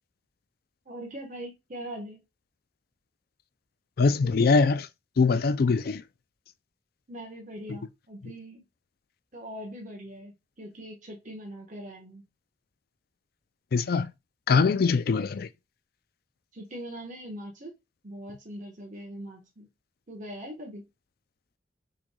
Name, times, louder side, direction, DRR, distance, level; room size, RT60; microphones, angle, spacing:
voice 1, 0.8-2.2 7.1-8.6 9.3-12.2 16.5-17.8 18.0-19.7 20.1-20.8, right 1 dB, 45° right, 1.2 m, -41 dB
voice 2, 4.0-4.9 5.2-6.0 13.7-14.1 14.5-15.5, left 4 dB, 55° left, 0.4 m, -22 dB
6.1 x 3.2 x 2.2 m
head